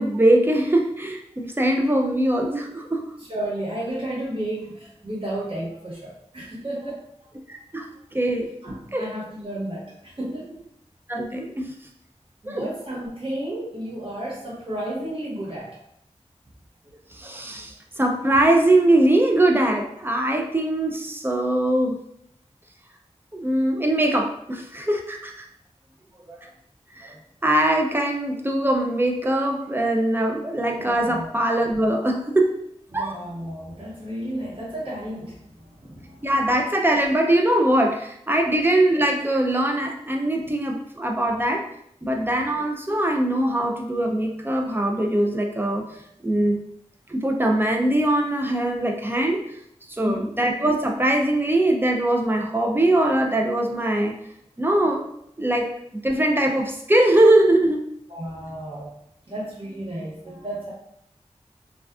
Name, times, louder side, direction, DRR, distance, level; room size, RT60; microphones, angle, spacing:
voice 1, 0.0-3.1 7.5-8.5 8.9-9.1 11.1-11.7 12.5-12.7 17.1-22.0 23.3-25.5 26.3-26.5 26.9-32.6 32.9-33.1 36.2-41.7 42.0-45.9 46.2-46.6 47.1-49.5 49.9-54.2 54.6-55.1 55.4-57.9, right 1 dB, 20° right, 2 dB, 0.4 m, -22 dB
voice 2, 3.2-7.3 8.6-10.7 12.4-15.8 30.7-31.3 32.9-36.3 40.4-40.5 50.0-50.4 58.1-59.0 59.3-60.7, right 1 dB, 45° right, -7 dB, 1.1 m, -33 dB
2.3 x 2.3 x 2.3 m, 0.74 s
wide cardioid pair, 70°, 12 cm